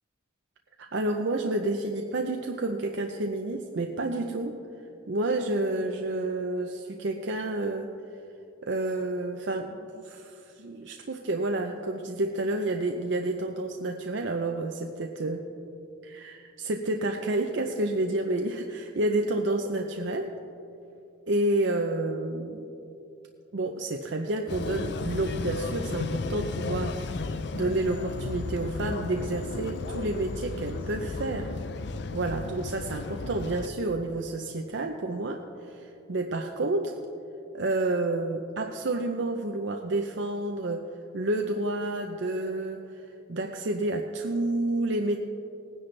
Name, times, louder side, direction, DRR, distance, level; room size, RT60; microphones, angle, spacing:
voice 1, 0.8-4.6 5.1-7.9 8.6-15.4 16.0-20.3 21.3-22.7 23.5-27.0 27.5-31.5 32.1-37.0 37.5-40.8 41.1-42.8 43.3-45.2, right 2 dB, 65° right, 3 dB, 0.6 m, -29 dB
sound 1, 24.5-33.7, left 3 dB, 55° left, 0.5 m, -34 dB
19.0 x 10.0 x 3.3 m, 2.7 s
head